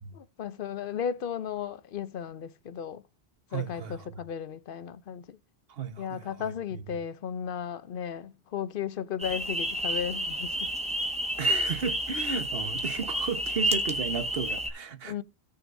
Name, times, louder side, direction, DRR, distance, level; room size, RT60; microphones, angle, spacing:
voice 1, 0.1-3.0 3.5-5.4 6.0-10.7 11.5-11.6 15.0-15.2, left 8 dB, 60° left, 0.7 m, -35 dB
voice 2, 3.5-4.2 5.7-6.5 11.4-15.2, right 6 dB, 60° right, 1.4 m, -34 dB
sound 1, 9.2-14.7, equal, 5° right, 1.4 m, -30 dB
17.5 x 6.2 x 2.6 m
omnidirectional pair, 1.1 m